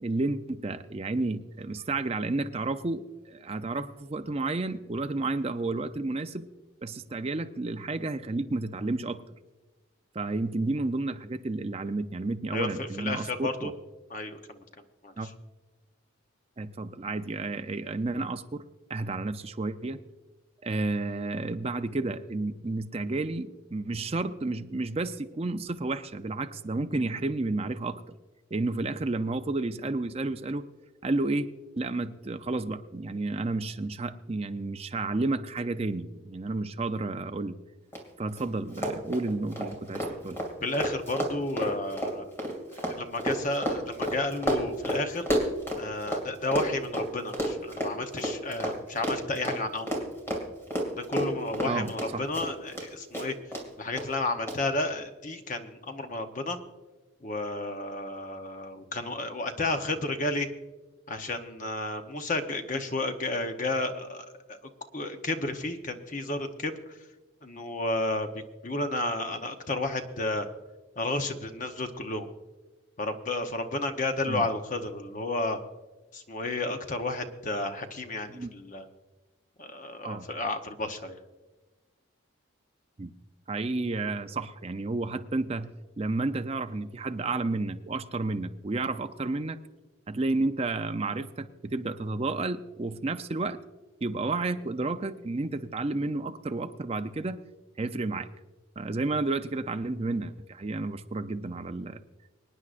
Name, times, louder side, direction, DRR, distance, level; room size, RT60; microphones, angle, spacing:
voice 1, 0.0-6.5 6.8-9.2 10.1-13.7 15.2-15.3 16.6-18.6 18.9-20.0 20.6-28.2 28.5-30.7 31.0-31.5 31.8-37.5 38.2-40.4 51.6-52.2 74.3-74.4 78.3-78.5 80.0-80.3 83.0-83.1 83.5-85.7 86.0-89.6 90.1-93.6 94.0-97.4 97.8-98.3 98.8-102.0, right 2 dB, 30° right, 8 dB, 0.5 m, -31 dB
voice 2, 12.5-13.7 14.1-14.6 15.0-15.3 40.6-42.2 42.7-45.3 45.8-50.0 51.0-53.3 53.8-56.6 57.2-60.5 61.1-64.6 64.9-67.0 67.4-70.5 71.0-72.3 73.0-75.6 76.1-78.9 79.6-81.2, left 2 dB, 40° left, 6 dB, 0.9 m, -32 dB
Run, 37.9-38.0 38.3-38.4 38.7-46.2 46.5-52.9 53.1-53.6 54.0-54.1 54.5-54.6, equal, 10° left, 2.3 m, -30 dB
25.5 x 9.6 x 2.5 m, 1.2 s
head